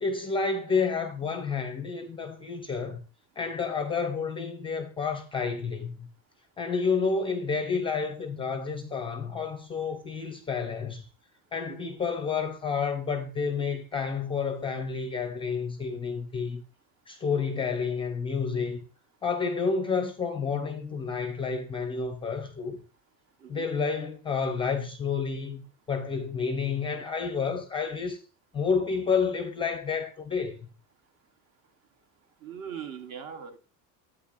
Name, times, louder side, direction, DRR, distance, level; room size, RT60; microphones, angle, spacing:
voice 1, 0.0-3.0 3.4-6.1 6.6-11.1 11.5-16.6 17.1-18.8 19.2-22.8 23.5-28.2 28.5-30.7, left 5 dB, 15° left, 0.5 m, -30 dB
voice 2, 11.7-12.0 23.4-23.7 32.4-33.6, right 8 dB, 45° right, 1.0 m, -40 dB
10.0 x 8.5 x 2.4 m
cardioid pair, 175°, 36 cm